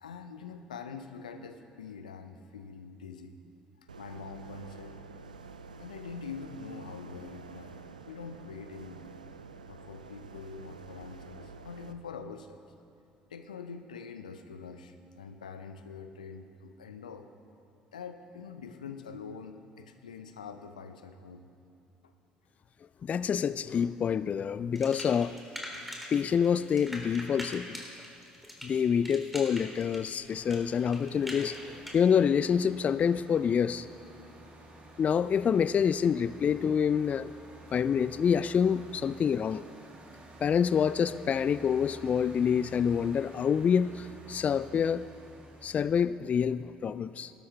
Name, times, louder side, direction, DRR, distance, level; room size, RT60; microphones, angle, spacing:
voice 1, 0.0-3.4 4.0-5.0 5.8-7.8 8.1-9.1 9.7-12.6 13.3-17.3 17.9-21.5 22.0-22.1, left 5 dB, 80° left, 8 dB, 0.6 m, -44 dB
sound 1, 3.9-11.9, right 4 dB, 85° right, 0.4 m, -48 dB
voice 2, 23.0-25.4 26.1-27.8 28.6-33.9 35.0-37.3 37.7-39.6 40.4-45.1 45.6-47.3, left 7 dB, 35° left, 16 dB, 0.3 m, -27 dB
sound 2, 24.7-26.2 26.4-32.0, equal, ahead, 2.9 m, -42 dB
sound 3, 30.3-45.9, right 1 dB, 35° right, 2.4 m, -51 dB
18.5 x 12.0 x 3.3 m, 2.6 s
figure-of-eight pair, 55°, 4 cm